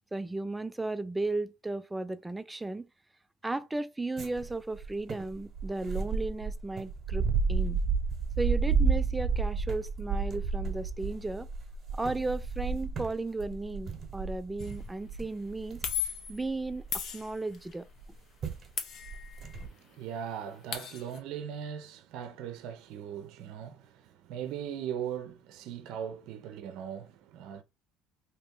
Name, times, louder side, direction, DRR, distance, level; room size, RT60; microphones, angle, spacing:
voice 1, 0.1-2.9 3.4-7.8 8.4-11.5 11.9-15.8 16.3-17.9, right 2 dB, 10° right, 0.4 m, -35 dB
sound 1, 4.2-17.3 18.0-18.1 18.4-18.7 19.0-19.7, right 5 dB, 40° right, 1.1 m, -32 dB
sound 2, 14.6-14.8 15.8-16.4 16.9-17.8 18.8-19.6 19.9-20.0 20.3-21.2, left 9 dB, 55° left, 0.8 m, -36 dB
voice 2, 19.5-27.6, right 9 dB, 70° right, 0.6 m, -39 dB
2.9 x 2.8 x 3.7 m
supercardioid pair, 90°, 0 cm